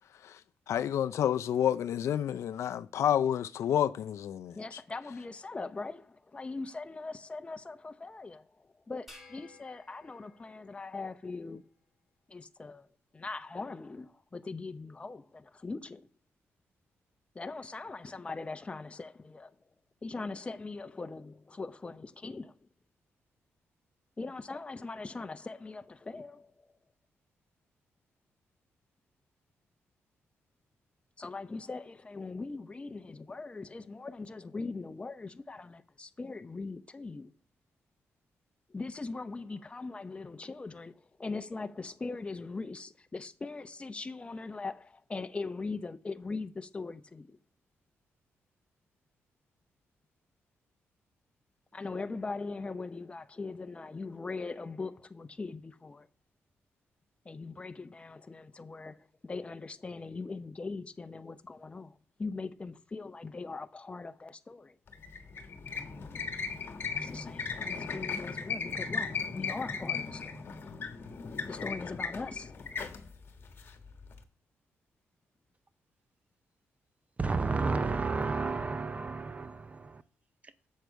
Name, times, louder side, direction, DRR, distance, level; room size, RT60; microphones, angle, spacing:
voice 1, 0.7-4.8, left 10 dB, 75° left, 0.4 m, -29 dB
voice 2, 4.5-11.7 12.3-12.9 13.1-16.1 17.3-19.6 20.0-22.7 24.2-26.7 31.2-37.3 38.7-47.4 51.7-56.1 57.2-64.8 67.0-70.5 71.5-72.6, left 3 dB, 25° left, 0.6 m, -41 dB
sound 1, 9.1-11.6, left 2 dB, 5° right, 1.9 m, -57 dB
sound 2, 64.9-74.2, left 5 dB, 50° left, 1.2 m, -37 dB
voice 3, 77.2-80.0, right 4 dB, 25° right, 0.5 m, -31 dB
7.4 x 6.7 x 4.5 m
cardioid pair, 105°, 5 cm